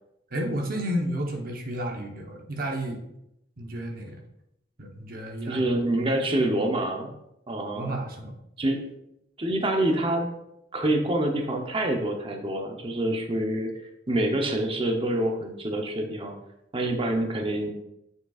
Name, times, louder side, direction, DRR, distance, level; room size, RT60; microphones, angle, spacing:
voice 1, 0.3-3.0 3.6-4.2 4.8-5.6 7.7-8.4, right 1 dB, 55° right, 1 dB, 1.0 m, -31 dB
voice 2, 5.4-7.1 7.5-8.0 8.6-9.0 9.4-10.3 10.7-13.7 14.1-16.3 16.7-17.7, right 1 dB, 30° right, 3 dB, 0.8 m, -26 dB
7.3 x 6.7 x 2.4 m, 0.81 s
head